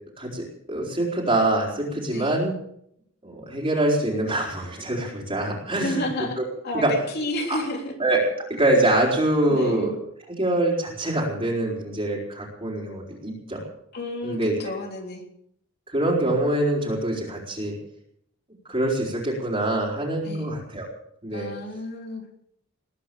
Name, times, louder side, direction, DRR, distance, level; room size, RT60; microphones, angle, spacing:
voice 1, 0.2-2.6 3.2-6.0 6.4-6.5 6.7-6.9 7.5-7.6 8.0-8.2 8.5-9.9 10.4-13.6 14.2-14.5 15.9-17.8 18.7-20.9 21.2-21.5, right 1 dB, 30° right, -3 dB, 4.2 m, -24 dB
voice 2, 5.8-7.9 9.5-10.0 13.9-15.2 20.2-20.5 21.3-22.2, left 1 dB, 55° left, 2 dB, 3.4 m, -31 dB
20.0 x 10.0 x 7.0 m, 0.71 s
head